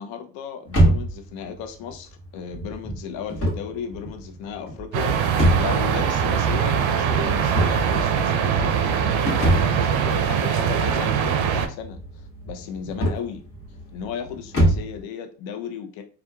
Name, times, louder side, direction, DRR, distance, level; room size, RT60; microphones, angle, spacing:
voice 1, 0.0-13.4 13.9-16.0, left 7 dB, 65° left, 0.6 m, -35 dB
sound 1, 0.7-15.0, right 1 dB, 30° left, 1.0 m, -26 dB
sound 2, 4.9-11.7, right 7 dB, 70° right, 0.6 m, -22 dB
2.9 x 2.3 x 2.2 m
supercardioid pair, 90°, 49 cm